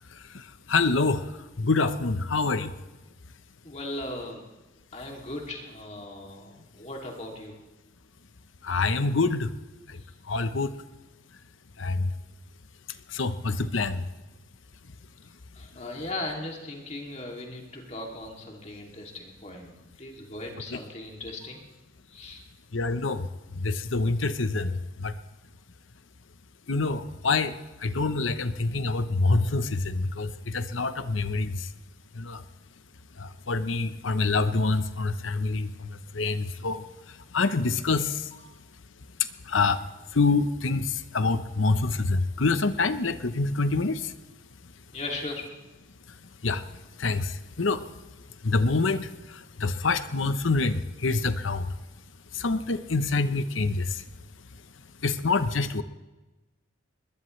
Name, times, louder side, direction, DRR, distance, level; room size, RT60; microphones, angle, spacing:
voice 1, 0.3-1.3 1.6-2.8 8.6-9.5 9.9-10.0 10.3-10.7 11.8-12.1 13.1-14.0 20.7-20.8 22.7-23.3 23.5-25.1 26.7-31.7 32.1-32.4 33.2-36.8 37.3-38.3 39.5-39.8 40.1-44.1 46.4-46.6 47.0-47.8 48.4-51.7 52.3-54.0 55.0-55.8, left 3 dB, 85° left, 11 dB, 0.9 m, -26 dB
voice 2, 3.6-4.4 4.9-7.6 10.0-10.1 13.5-13.9 15.5-19.7 20.0-21.6 22.1-22.4 38.3-38.4 44.9-45.5, left 2 dB, 35° left, 0 dB, 2.7 m, -38 dB
21.5 x 20.5 x 3.3 m, 1.1 s
head